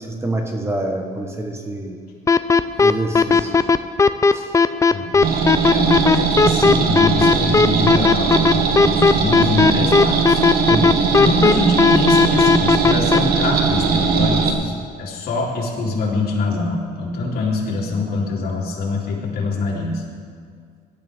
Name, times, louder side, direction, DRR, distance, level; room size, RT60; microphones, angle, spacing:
voice 1, 0.0-2.0 2.8-3.7 4.3-4.5 10.7-11.0, right 1 dB, 15° right, 3 dB, 1.3 m, -26 dB
sound 1, 2.3-13.2, left 4 dB, 20° left, 0.4 m, -14 dB
voice 2, 4.9-5.3 5.7-10.4 11.2-20.0, left 3 dB, 65° left, -3 dB, 3.4 m, -24 dB
sound 2, 5.2-14.5, right 5 dB, 65° right, 1.3 m, -19 dB
18.0 x 12.0 x 3.6 m, 2.1 s
cardioid pair, 110°, 17 cm